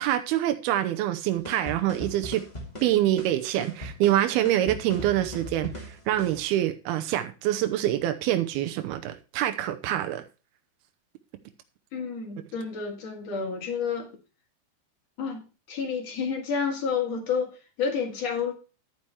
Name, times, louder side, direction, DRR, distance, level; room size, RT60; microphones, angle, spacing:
voice 1, 0.0-2.4 2.8-10.2, right 13 dB, 85° right, 2.3 m, -26 dB
sound 1, 1.4-6.4, left 1 dB, 30° left, 0.8 m, -39 dB
voice 2, 11.9-14.1 15.2-18.5, left 6 dB, 50° left, 2.1 m, -30 dB
10.5 x 9.9 x 3.3 m
omnidirectional pair, 5.2 m